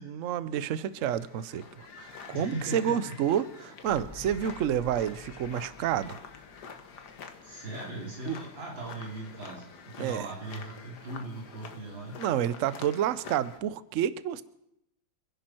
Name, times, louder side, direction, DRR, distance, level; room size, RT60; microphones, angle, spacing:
voice 1, 0.0-6.2 8.3-8.4 10.0-10.3 12.2-14.4, right 10 dB, 60° right, 15 dB, 0.8 m, -29 dB
sound 1, 0.8-13.6, left 6 dB, 60° left, 1.8 m, -47 dB
voice 2, 2.3-3.1 7.4-12.1, right 1 dB, 85° right, -4 dB, 4.1 m, -39 dB
sound 2, 3.8-8.3 8.7-8.8, left 3 dB, 25° left, 1.9 m, -50 dB
28.0 x 11.0 x 4.4 m, 0.80 s
omnidirectional pair, 2.0 m